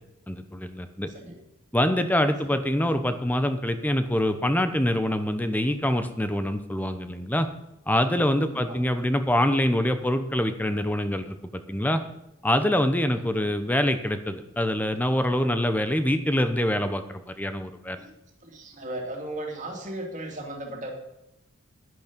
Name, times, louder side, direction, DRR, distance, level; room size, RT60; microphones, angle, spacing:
voice 1, 0.3-1.1 1.7-7.5 7.9-12.0 12.4-18.0, left 1 dB, 10° left, 9 dB, 0.9 m, -25 dB
voice 2, 1.1-1.4 2.4-2.6 8.5-8.8 13.1-13.5 18.0-18.1 18.4-20.9, right 1 dB, 35° right, 1 dB, 2.6 m, -37 dB
11.0 x 10.5 x 5.3 m, 0.92 s
head